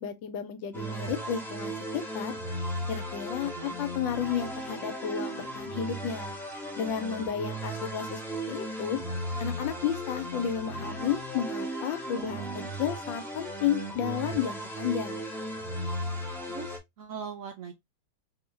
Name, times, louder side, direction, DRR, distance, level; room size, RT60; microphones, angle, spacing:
voice 1, 0.0-2.3 2.9-6.3 6.8-8.2 8.5-9.0 9.4-12.5 12.8-15.2, left 9 dB, 90° left, 1.4 m, -32 dB
sound 1, 0.7-16.8, right 1 dB, 5° left, 0.4 m, -36 dB
voice 2, 3.4-3.8 12.1-12.7 16.5-17.7, right 6 dB, 75° right, 0.7 m, -41 dB
3.8 x 2.7 x 3.1 m
omnidirectional pair, 2.0 m